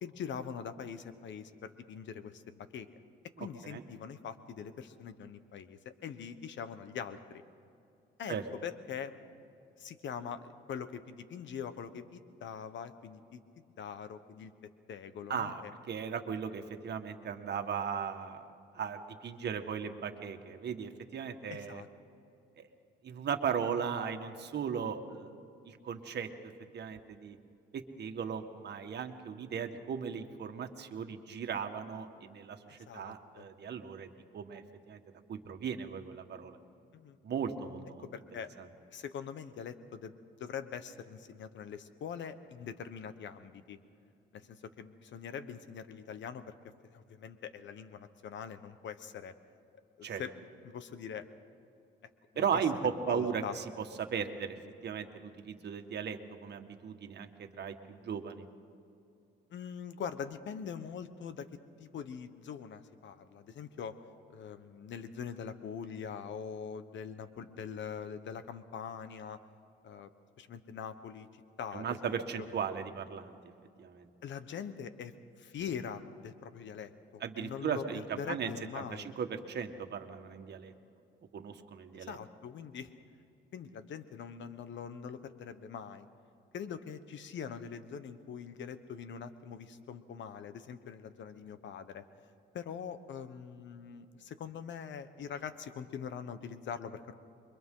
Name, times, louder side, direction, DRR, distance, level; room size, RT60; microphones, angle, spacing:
voice 1, 0.0-2.9 3.4-7.4 8.2-9.1 9.8-13.4 13.8-14.5 14.9-15.7 21.5-21.9 32.7-33.4 36.9-37.2 38.0-38.5 38.9-40.1 40.4-43.8 44.3-46.5 46.8-49.3 50.0-51.3 52.3-52.6 53.1-53.5 59.5-61.5 61.8-63.9 64.3-69.4 69.8-70.1 70.4-71.3 71.6-72.2 74.2-79.1 82.1-82.9 83.5-86.1 86.5-92.0 92.5-97.2, left 7 dB, 70° left, 11 dB, 1.2 m, -43 dB
voice 2, 3.4-3.8 8.3-8.4 15.3-18.5 18.7-21.8 22.6-22.7 23.0-25.3 25.7-26.3 26.7-27.4 27.7-35.0 35.3-36.6 37.2-38.0 38.6-38.7 50.0-50.2 52.4-54.6 54.8-58.4 71.7-73.4 73.8-74.1 77.2-78.5 78.8-80.7 81.3-82.2, right 7 dB, 60° right, 6 dB, 1.7 m, -37 dB
28.5 x 23.5 x 3.9 m, 2.7 s
cardioid pair, 90°, 20 cm